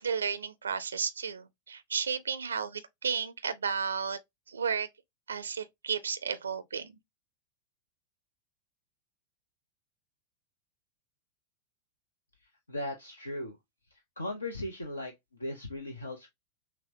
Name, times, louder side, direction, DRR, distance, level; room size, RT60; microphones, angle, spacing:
voice 1, 0.0-4.2 4.5-4.9 5.3-7.0, right 6 dB, 70° right, 0.4 m, -33 dB
voice 2, 12.7-13.6 14.2-15.1 15.4-16.3, left 1 dB, 75° left, 0.6 m, -37 dB
5.8 x 2.1 x 2.7 m
figure-of-eight pair, 90°, 0 cm